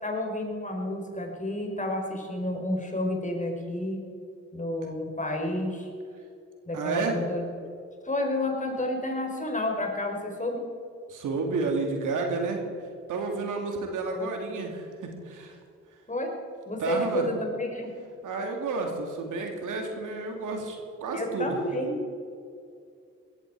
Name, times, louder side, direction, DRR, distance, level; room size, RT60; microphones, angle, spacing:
voice 1, 0.0-4.0 4.5-5.9 6.7-7.4 8.0-10.6 14.1-14.3 16.1-16.3 16.7-17.9 21.1-22.0, left 1 dB, 25° left, 2 dB, 4.5 m, -30 dB
voice 2, 6.7-7.2 11.1-12.6 13.1-15.5 16.8-17.2 18.2-20.8 21.0-21.6, right 3 dB, 75° right, 3 dB, 2.7 m, -30 dB
18.0 x 14.0 x 4.8 m, 2.4 s
supercardioid pair, 50°, 31 cm